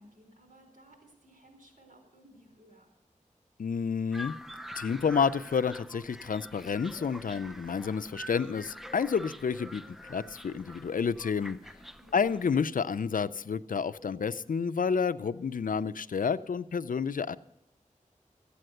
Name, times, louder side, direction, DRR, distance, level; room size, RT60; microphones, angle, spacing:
voice 1, 0.0-2.9 12.0-12.3, right 1 dB, 90° right, 2 dB, 4.1 m, -58 dB
voice 2, 3.6-4.4 4.8-9.8 10.1-11.6 12.1-17.4, left 6 dB, 90° left, 14 dB, 0.4 m, -30 dB
sound 1, 4.1-12.6, equal, ahead, 0.6 m, -46 dB
14.0 x 8.5 x 7.8 m, 0.85 s
wide cardioid pair, 60°, 14 cm